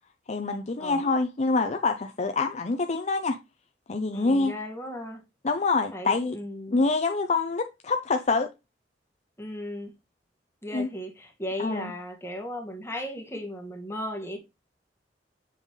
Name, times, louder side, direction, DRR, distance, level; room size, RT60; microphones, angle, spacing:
voice 1, 0.3-3.4 3.9-4.5 5.4-6.4 6.7-8.5 10.7-10.9 11.6-11.9, left 3 dB, 40° left, 0.6 m, -26 dB
voice 2, 4.1-5.2 5.9-6.8 9.4-9.9 10.6-14.4, left 1 dB, 15° left, 1.8 m, -36 dB
7.7 x 5.3 x 3.1 m
head